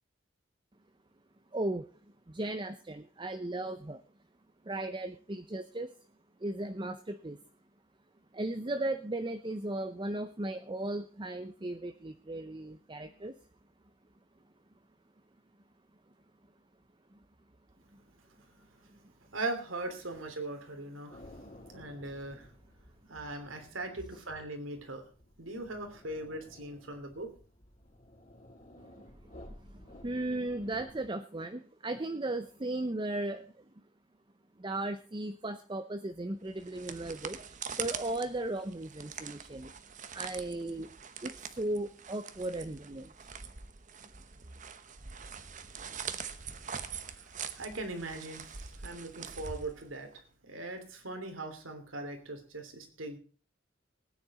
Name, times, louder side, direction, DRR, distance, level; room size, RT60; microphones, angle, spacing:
voice 1, 1.5-1.9 2.3-4.0 4.6-5.9 6.4-7.4 8.3-13.3 17.1-17.2 17.9-18.0 18.9-19.0 29.0-29.1 29.6-33.7 34.6-39.7 40.1-40.9 41.2-43.1, right 2 dB, 25° right, 8 dB, 0.6 m, -36 dB
voice 2, 19.3-21.2 21.7-22.5 23.1-25.1 25.4-27.3 46.6-46.8 47.1-53.2, right 2 dB, 80° right, 6 dB, 3.0 m, -40 dB
sound 1, 21.1-30.9, left 1 dB, 40° left, 3.6 m, -55 dB
sound 2, 36.5-50.2, right 7 dB, 40° right, 1.0 m, -44 dB
19.0 x 9.8 x 4.2 m, 0.39 s
head